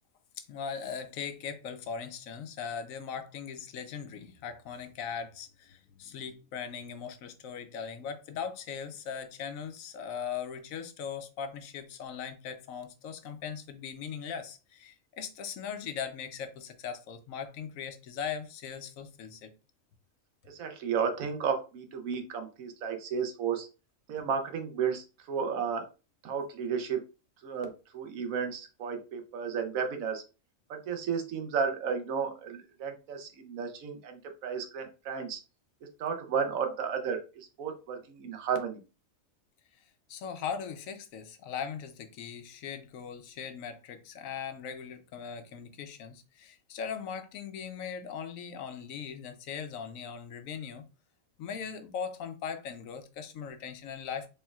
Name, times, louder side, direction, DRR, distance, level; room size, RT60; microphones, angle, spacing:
voice 1, 0.4-19.5 40.1-50.9 51.4-54.3, left 7 dB, 80° left, 1.0 m, -39 dB
voice 2, 20.5-23.7 24.1-25.9 26.2-27.0 27.4-30.2 30.7-35.4 36.0-38.8, right 6 dB, 80° right, 1.2 m, -33 dB
4.3 x 3.4 x 2.3 m
omnidirectional pair, 1.4 m